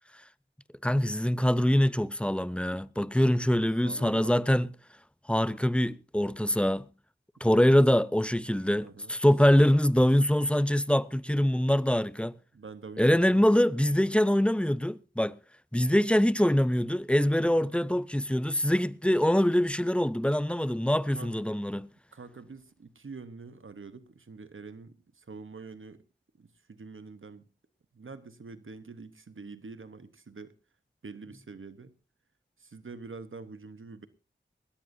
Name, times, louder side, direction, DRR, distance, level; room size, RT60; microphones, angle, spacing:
voice 1, 0.8-4.7 5.3-6.9 7.4-12.4 13.0-15.4 15.7-21.9, equal, 5° left, 0.7 m, -24 dB
voice 2, 3.8-4.4 7.4-7.6 8.8-9.1 12.5-14.2 17.6-17.8 21.1-21.5 22.1-26.0 26.3-27.5 27.9-30.6 31.0-31.9 32.6-34.1, right 4 dB, 80° right, 1.0 m, -46 dB
20.5 x 16.5 x 2.7 m
wide cardioid pair, 50°, 20 cm